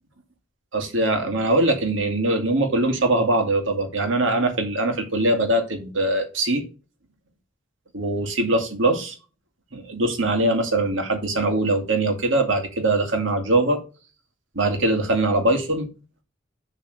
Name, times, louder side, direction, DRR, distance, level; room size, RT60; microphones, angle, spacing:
voice 1, 0.7-6.6 7.9-9.1 9.7-13.8 14.6-15.9, right 2 dB, 85° right, 2.3 m, -22 dB
7.5 x 4.1 x 6.7 m
head